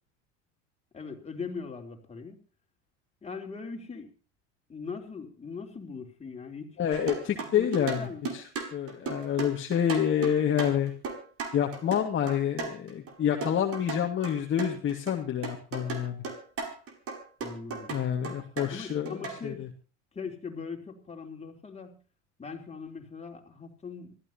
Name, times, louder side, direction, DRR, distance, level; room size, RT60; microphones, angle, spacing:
voice 1, 0.9-2.4 3.2-4.1 4.7-6.8 7.4-8.2 17.4-17.9 18.7-19.7 20.1-22.0 22.4-24.2, left 5 dB, 20° left, 2 dB, 4.0 m, -40 dB
voice 2, 6.8-8.1 8.3-8.4 8.7-10.9 11.5-16.2 17.9-19.7, left 9 dB, 35° left, 2 dB, 2.2 m, -28 dB
sound 1, 6.9-13.1 13.4-15.2 15.4-19.4, right 4 dB, 40° right, 5.3 m, -36 dB
25.5 x 15.0 x 2.9 m, 0.35 s
hypercardioid pair, 90°, 35 cm